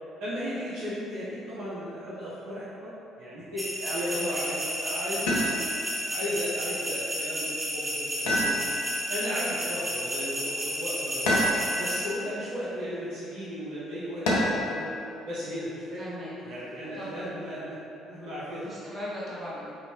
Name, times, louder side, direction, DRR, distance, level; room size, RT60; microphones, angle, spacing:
voice 1, 0.2-2.9 3.2-5.7 6.1-8.7 9.1-11.4 11.8-14.9 15.2-16.0 16.4-17.8 18.1-18.6, equal, 65° right, -12 dB, 1.0 m, -35 dB
sound 1, 3.6-12.1, equal, 10° right, 0.8 m, -32 dB
voice 2, 3.8-4.4 15.9-16.3 16.9-17.2 18.6-19.6, equal, 35° right, -9 dB, 1.5 m, -38 dB
sound 2, 5.3-5.9 8.3-9.1 11.3-12.0 14.3-14.8 16.5-17.1, equal, 70° left, 0.6 m, -27 dB
5.1 x 2.7 x 3.0 m, 2.7 s
figure-of-eight pair, 50°, 0 cm